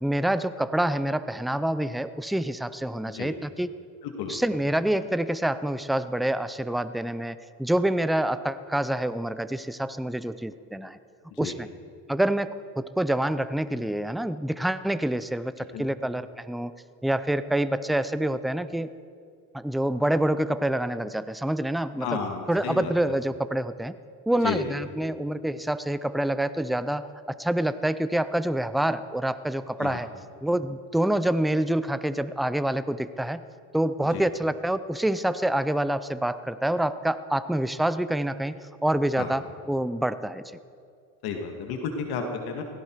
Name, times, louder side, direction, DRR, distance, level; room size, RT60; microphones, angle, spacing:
voice 1, 0.0-3.7 4.3-11.0 11.4-11.7 12.1-16.7 17.0-18.9 19.5-22.2 22.5-23.9 24.3-27.1 27.4-30.1 30.4-33.4 33.7-38.5 38.8-40.4, right 1 dB, ahead, 13 dB, 0.4 m, -27 dB
voice 2, 4.0-4.3 11.3-11.5 15.7-15.8 22.0-22.9 24.4-24.7 29.8-30.0 34.1-34.2 39.2-39.3 41.2-42.6, left 6 dB, 70° left, 3 dB, 2.1 m, -32 dB
17.0 x 16.0 x 4.7 m, 2.3 s
cardioid pair, 105°, 38 cm